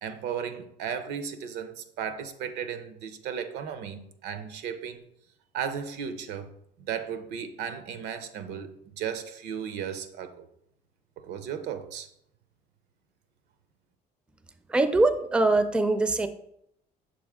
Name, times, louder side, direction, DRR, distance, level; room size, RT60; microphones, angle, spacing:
voice 1, 0.0-5.0 5.5-6.5 6.9-10.5 11.2-12.1, right 8 dB, 85° right, 0.6 m, -35 dB
voice 2, 14.7-16.3, right 2 dB, 5° right, 0.4 m, -22 dB
6.2 x 4.3 x 3.5 m
cardioid pair, 110°, 17 cm